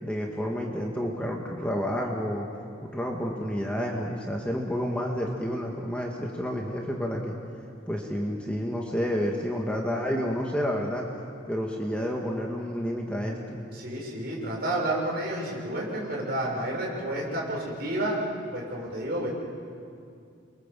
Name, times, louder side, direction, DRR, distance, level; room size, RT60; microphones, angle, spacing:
voice 1, 0.0-2.5 2.9-7.4 7.9-11.0 11.5-13.6, equal, 5° left, -1 dB, 2.1 m, -30 dB
voice 2, 13.7-18.2 18.5-19.3, right 1 dB, 50° right, -2 dB, 6.7 m, -30 dB
29.5 x 24.0 x 7.7 m, 2.4 s
head